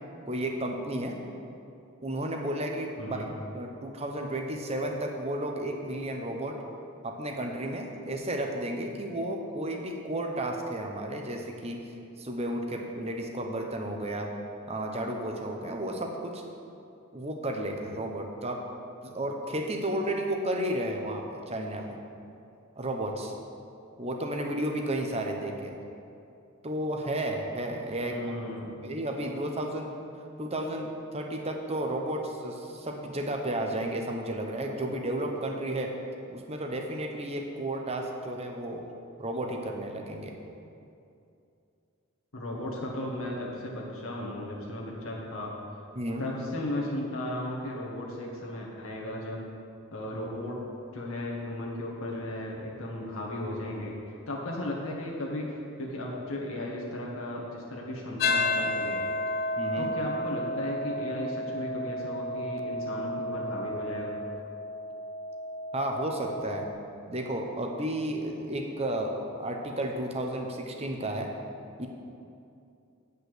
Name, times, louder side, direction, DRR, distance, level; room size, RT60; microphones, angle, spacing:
voice 1, 0.3-1.2 2.0-3.2 3.5-6.6 7.0-11.8 12.2-14.3 14.7-16.4 17.1-18.6 19.1-21.8 22.8-23.3 24.0-25.8 26.6-28.2 28.8-29.9 30.4-35.9 36.3-38.9 39.2-40.3 45.9-46.3 59.6-60.0 65.7-66.7 67.1-71.3 71.8-71.9, right 1 dB, 30° right, 2 dB, 0.9 m, -32 dB
voice 2, 3.0-3.3 28.0-28.8 42.3-45.5 46.2-49.4 49.9-50.6 50.9-53.9 54.3-59.0 59.8-64.2, left 1 dB, 70° left, -3 dB, 1.5 m, -35 dB
sound 1, 58.2-66.7, left 1 dB, 45° left, 0.5 m, -32 dB
8.6 x 5.4 x 7.8 m, 2.6 s
head